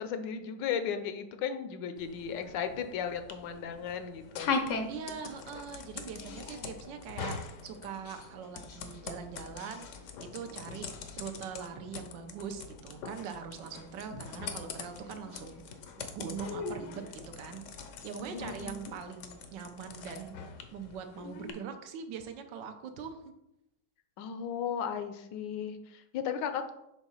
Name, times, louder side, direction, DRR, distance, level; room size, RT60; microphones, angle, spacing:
voice 1, 0.0-4.6 18.2-18.8 24.2-26.7, left 7 dB, 80° left, 9 dB, 1.3 m, -35 dB
sound 1, 2.0-21.5, left 4 dB, 65° left, 0.8 m, -41 dB
voice 2, 4.9-10.9 11.2-20.4 20.7-23.2, right 6 dB, 80° right, 7 dB, 1.4 m, -42 dB
4.9 x 3.6 x 5.5 m, 0.85 s
omnidirectional pair, 1.9 m